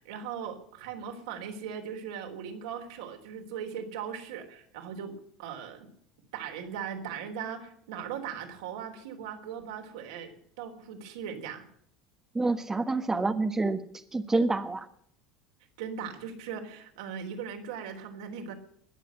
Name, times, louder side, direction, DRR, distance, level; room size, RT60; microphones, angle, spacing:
voice 1, 0.0-5.1 5.4-5.9 6.3-10.3 10.6-11.6 15.8-18.5, right 7 dB, 75° right, 3 dB, 3.5 m, -39 dB
voice 2, 12.3-13.8 14.1-14.9, right 3 dB, 15° right, 7 dB, 1.3 m, -27 dB
21.0 x 7.6 x 7.8 m, 0.67 s
hypercardioid pair, 80°, 3 cm